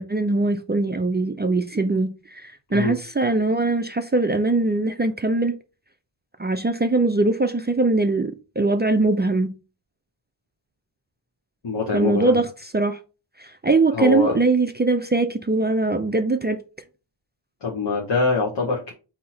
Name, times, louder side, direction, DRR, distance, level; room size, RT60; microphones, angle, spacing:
voice 1, 0.0-5.5 6.4-9.5 11.9-13.0 13.4-16.6, right 2 dB, 25° right, 0.4 m, -21 dB
voice 2, 11.6-12.4 13.9-14.4 17.6-18.9, left 3 dB, 60° left, 1.0 m, -24 dB
4.1 x 2.8 x 4.1 m
wide cardioid pair, 60°, 47 cm